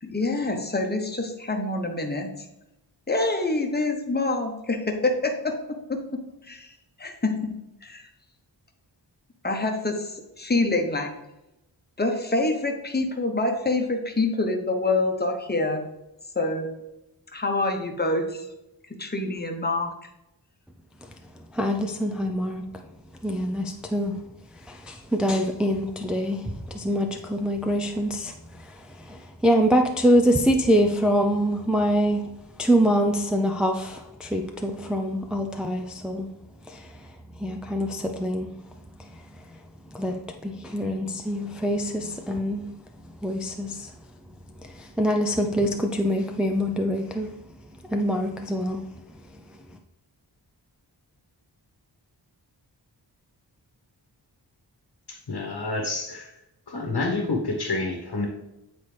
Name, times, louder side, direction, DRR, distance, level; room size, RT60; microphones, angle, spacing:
voice 1, 0.0-2.5 3.1-5.5 5.9-6.0 6.4-6.7 7.0-7.5 7.8-8.1 9.4-11.1 12.0-15.8 16.3-16.7 17.3-18.5 19.0-19.9, left 2 dB, 25° left, 4 dB, 0.9 m, -26 dB
voice 2, 21.5-22.7 23.2-24.2 24.5-32.3 32.6-36.3 36.7-37.1 37.4-38.6 39.0-39.6 39.9-42.7 43.2-43.9 44.6-47.4 47.9-48.9 49.3-49.4, equal, ahead, 3 dB, 0.4 m, -25 dB
voice 3, 55.1-56.3 56.7-58.3, left 3 dB, 65° left, 0 dB, 1.1 m, -28 dB
8.7 x 4.1 x 3.3 m, 0.92 s
wide cardioid pair, 70°, 43 cm